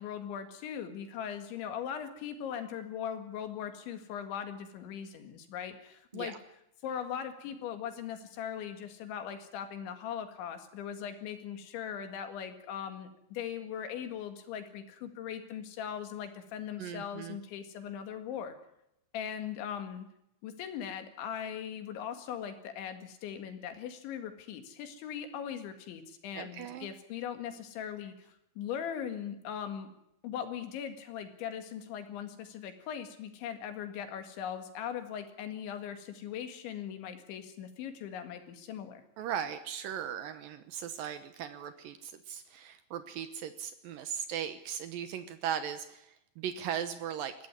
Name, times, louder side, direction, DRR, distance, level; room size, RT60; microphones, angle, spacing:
voice 1, 0.0-6.4 6.8-18.6 19.1-20.1 20.4-28.1 28.6-29.9 30.2-39.0, left 8 dB, 75° left, 8 dB, 4.2 m, -40 dB
voice 2, 16.8-17.4 26.3-26.9 39.2-47.3, right 9 dB, 80° right, 11 dB, 2.0 m, -38 dB
21.5 x 15.5 x 9.7 m, 0.80 s
omnidirectional pair, 5.4 m